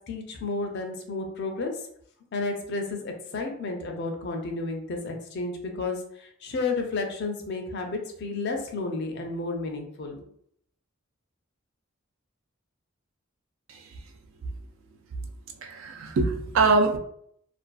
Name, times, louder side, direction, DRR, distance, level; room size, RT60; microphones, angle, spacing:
voice 1, 0.1-1.7 2.3-10.2, left 3 dB, 55° left, 3 dB, 0.5 m, -32 dB
voice 2, 15.6-17.0, right 3 dB, 70° right, 6 dB, 0.3 m, -23 dB
2.5 x 2.3 x 2.2 m, 0.67 s
head